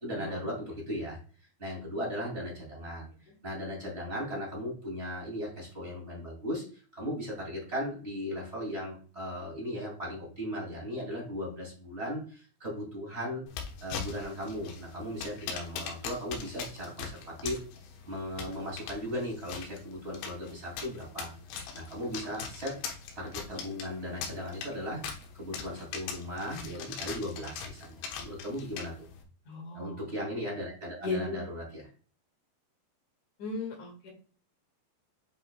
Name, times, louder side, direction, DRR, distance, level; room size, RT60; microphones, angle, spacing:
voice 1, 0.0-1.2 1.6-13.4 13.8-17.6 18.1-21.3 21.7-22.8 23.2-25.0 25.3-29.1 29.7-31.8, equal, 20° right, -4 dB, 2.0 m, -37 dB
sound 1, 13.5-29.2, left 6 dB, 90° left, 3.5 m, -42 dB
voice 2, 29.5-30.1 31.0-31.4 33.4-34.1, left 3 dB, 50° left, 2 dB, 2.6 m, -36 dB
9.2 x 5.5 x 2.3 m, 0.41 s
omnidirectional pair, 5.1 m